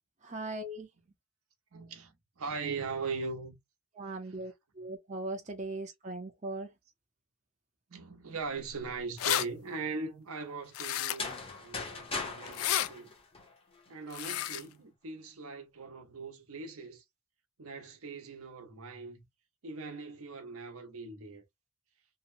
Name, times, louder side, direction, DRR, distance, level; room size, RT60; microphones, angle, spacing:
voice 1, 0.2-0.9 4.0-6.7, right 2 dB, 35° right, 0.5 m, -39 dB
voice 2, 1.7-3.6 4.2-4.5 7.9-13.1 13.9-17.0 17.6-19.3 19.6-21.4, right 4 dB, 90° right, 0.8 m, -40 dB
sound 1, 8.7-8.8 9.0-9.4 10.7-11.4 12.5-12.9 14.1-14.6, left 12 dB, 85° left, 0.3 m, -31 dB
sound 2, 11.0-13.9, left 3 dB, 25° left, 0.8 m, -39 dB
2.9 x 2.1 x 2.5 m
head